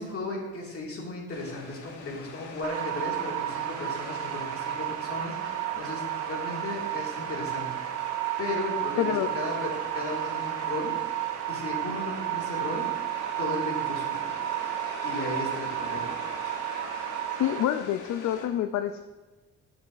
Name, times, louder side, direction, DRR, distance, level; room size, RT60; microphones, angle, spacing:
voice 1, 0.0-7.7 8.0-8.1 8.4-10.9 11.5-13.1 13.4-14.3 15.0-16.1, left 2 dB, 50° left, -2 dB, 2.3 m, -35 dB
sound 1, 1.3-18.5, left 4 dB, 85° left, 1.1 m, -44 dB
sound 2, 2.6-17.6, right 14 dB, 60° right, 0.5 m, -32 dB
voice 2, 9.0-9.3 17.4-19.0, left 11 dB, 65° left, 9 dB, 0.5 m, -27 dB
9.7 x 7.0 x 2.6 m, 1.2 s
cardioid pair, 90°, 30 cm